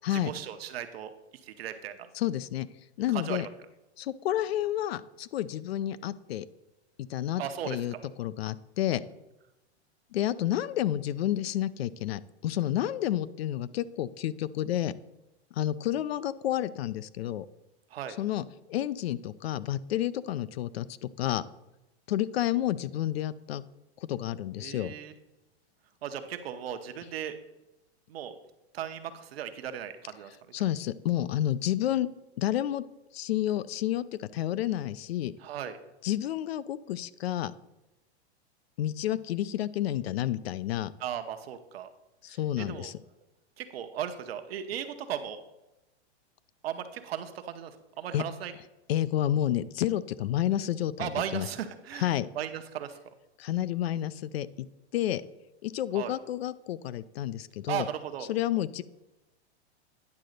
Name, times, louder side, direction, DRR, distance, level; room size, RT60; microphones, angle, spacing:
voice 1, 0.1-1.1 1.4-2.1 3.1-3.5 7.4-8.0 17.9-18.2 24.6-25.1 26.0-27.4 28.1-28.3 28.7-30.6 35.4-35.8 41.0-41.9 42.3-42.9 43.6-45.4 46.6-48.5 51.0-53.0 55.9-56.1 57.7-58.3, right 9 dB, 60° right, 8 dB, 0.9 m, -37 dB
voice 2, 2.2-2.7 3.0-3.5 4.0-6.5 7.1-9.0 10.1-14.9 15.6-17.5 18.2-21.4 22.1-23.6 24.1-24.9 30.5-32.1 32.4-32.8 33.1-35.3 36.0-37.5 38.8-40.9 42.2-42.9 48.1-48.2 48.9-51.5 52.0-52.3 53.4-54.7 54.9-55.2 55.6-57.9 58.3-58.8, left 12 dB, 65° left, 17 dB, 0.5 m, -30 dB
9.7 x 3.8 x 6.5 m, 0.97 s
supercardioid pair, 175°, 33 cm